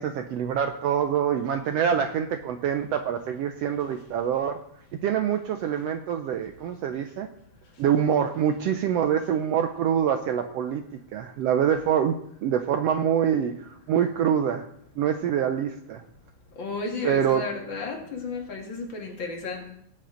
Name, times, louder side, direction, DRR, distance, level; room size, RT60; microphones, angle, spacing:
voice 1, 0.0-4.6 5.0-7.3 7.8-10.8 11.1-12.1 12.4-14.6 15.0-16.0 17.0-17.4, right 8 dB, 80° right, 7 dB, 1.5 m, -25 dB
voice 2, 16.6-19.7, left 3 dB, 45° left, 1 dB, 2.4 m, -33 dB
18.0 x 7.6 x 3.9 m, 0.70 s
omnidirectional pair, 3.4 m